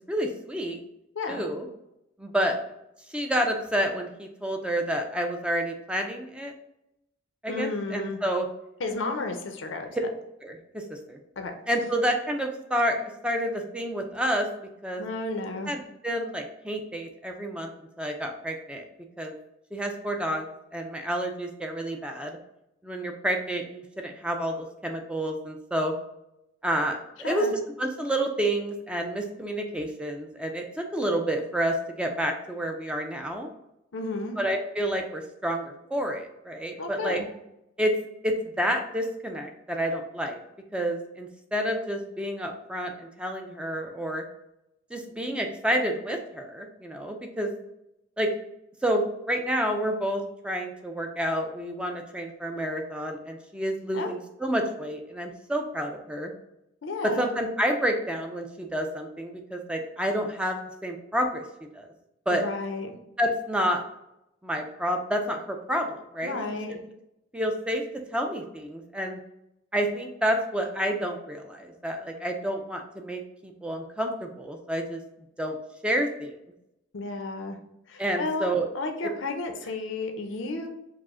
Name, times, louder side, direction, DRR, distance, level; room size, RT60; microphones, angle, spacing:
voice 1, 0.1-0.8 1.3-1.7 2.2-2.6 3.1-6.5 7.4-8.5 10.4-11.2 11.7-14.5 14.8-15.0 15.7-17.7 18.0-18.8 19.2-19.3 19.7-22.4 22.8-25.9 26.6-33.5 34.4-35.6 35.9-37.2 37.8-38.0 38.2-40.4 40.7-44.2 44.9-47.5 48.2-48.3 48.8-56.3 57.0-61.4 61.7-61.9 62.3-62.4 63.2-63.8 64.4-66.4 66.7-66.8 67.3-67.8 68.1-69.2 69.7-75.0 75.4-75.6 75.8-76.3 78.0-78.7 79.0-79.1, equal, 5° right, 3 dB, 0.4 m, -29 dB
voice 2, 7.5-8.2 8.8-9.9 11.4-11.5 15.0-15.7 27.2-27.5 33.9-34.4 36.8-37.3 53.9-54.1 56.8-57.3 62.3-63.0 66.2-66.8 76.9-77.6 77.9-80.7, left 3 dB, 85° left, 5 dB, 0.6 m, -32 dB
4.8 x 2.1 x 3.6 m, 0.85 s
head